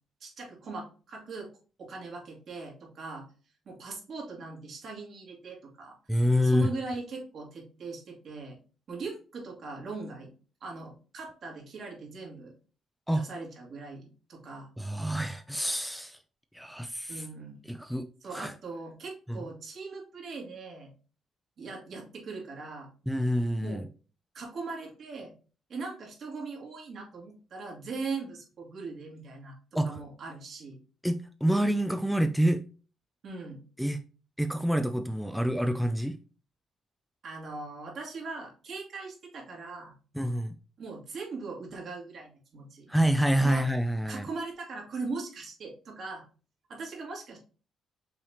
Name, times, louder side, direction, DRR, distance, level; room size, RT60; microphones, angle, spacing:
voice 1, 0.2-1.5 1.8-3.3 3.7-6.0 6.4-8.6 8.9-10.3 10.6-12.5 13.1-14.7 17.1-17.6 18.2-20.9 21.6-22.9 23.6-23.8 24.3-25.3 25.7-29.5 29.8-30.8 33.2-33.6 37.2-40.0 40.8-42.9 43.4-43.7 44.1-46.2 46.7-47.4, right 3 dB, 60° right, 2.0 m, -40 dB
voice 2, 6.1-6.7 13.1-13.2 14.8-16.2 16.5-17.2 17.7-18.5 19.3-19.4 23.1-23.9 29.7-30.0 31.0-32.6 33.8-34.0 34.4-36.2 40.1-40.5 42.9-44.3, equal, ahead, 0.4 m, -27 dB
5.6 x 3.4 x 2.7 m
cardioid pair, 90°, 0 cm